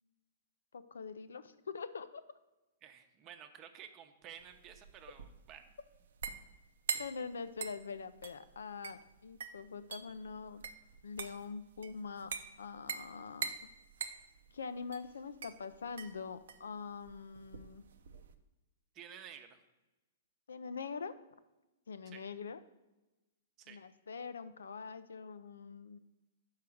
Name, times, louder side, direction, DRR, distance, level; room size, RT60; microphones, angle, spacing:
voice 1, 0.7-2.2 7.0-10.6 11.0-12.3 12.6-13.5 14.5-17.9 20.5-21.1 21.9-22.6 23.7-26.0, left 5 dB, 90° left, 13 dB, 0.5 m, -44 dB
voice 2, 2.8-5.6 18.9-19.6 22.1-22.2 23.6-23.8, right 9 dB, 30° right, 7 dB, 0.8 m, -52 dB
sound 1, 4.4-18.3, right 6 dB, 75° right, 0.6 m, -44 dB
5.8 x 4.7 x 6.3 m, 1.1 s
hypercardioid pair, 135°, 0 cm